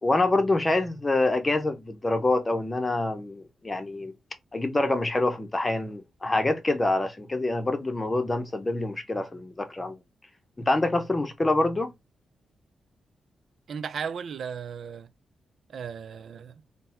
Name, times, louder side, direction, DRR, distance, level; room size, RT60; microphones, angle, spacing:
voice 1, 0.0-4.1 4.5-10.0 10.6-11.9, left 2 dB, 20° left, 0.8 m, -26 dB
voice 2, 13.7-15.1 15.7-16.5, right 7 dB, 65° right, 0.5 m, -35 dB
3.9 x 2.3 x 4.3 m
cardioid pair, 105°, 0 cm